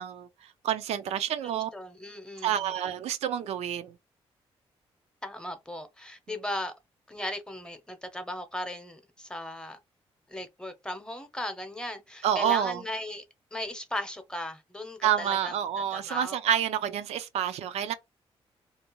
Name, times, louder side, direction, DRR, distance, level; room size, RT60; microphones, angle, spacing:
voice 1, 0.0-1.7 2.4-3.9 12.2-12.8 15.0-17.9, right 10 dB, 90° right, 0.4 m, -28 dB
voice 2, 1.4-2.7 5.2-6.7 7.1-9.8 10.3-13.2 13.5-15.6 15.9-16.3, left 1 dB, 10° left, 0.7 m, -37 dB
2.4 x 2.1 x 3.0 m
cardioid pair, 85°, 11 cm